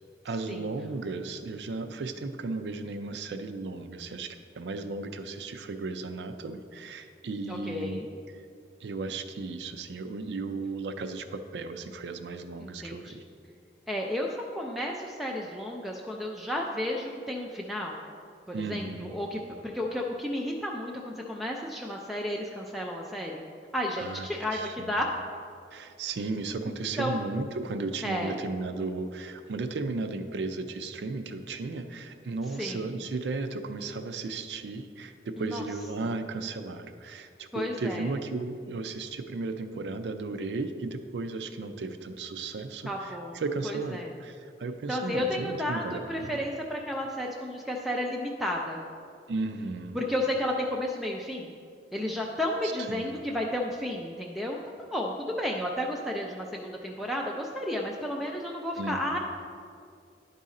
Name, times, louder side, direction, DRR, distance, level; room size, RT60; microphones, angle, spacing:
voice 1, 0.2-8.0 8.3-8.5 8.8-13.2 18.5-19.1 24.0-25.0 25.7-46.4 49.3-50.0 52.9-53.1 58.8-59.2, right 3 dB, 70° right, 8 dB, 0.4 m, -35 dB
voice 2, 7.5-8.1 12.6-13.2 13.9-18.0 18.5-23.4 23.7-25.1 27.0-27.2 28.0-28.4 32.6-32.8 35.4-35.6 37.5-38.1 42.9-44.1 44.9-48.8 49.9-51.5 51.9-54.6 54.9-59.2, left 1 dB, ahead, -1 dB, 0.4 m, -32 dB
10.5 x 4.1 x 3.7 m, 2.3 s
head